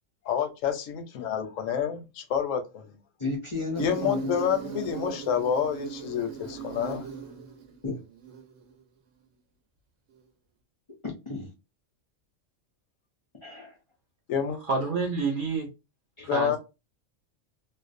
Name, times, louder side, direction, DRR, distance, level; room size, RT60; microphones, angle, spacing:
voice 1, 0.3-2.9 3.8-7.1 14.3-14.6 16.3-16.6, left 8 dB, 85° left, 1.0 m, -28 dB
voice 2, 3.2-4.3 7.8-8.0 11.0-11.5 13.4-13.8 16.2-16.3, left 3 dB, 50° left, 0.3 m, -33 dB
Insect, 3.7-8.7, right 8 dB, 75° right, 0.9 m, -39 dB
voice 3, 14.7-15.7 16.3-16.6, right 4 dB, 60° right, 0.5 m, -27 dB
2.5 x 2.0 x 2.4 m
omnidirectional pair, 1.3 m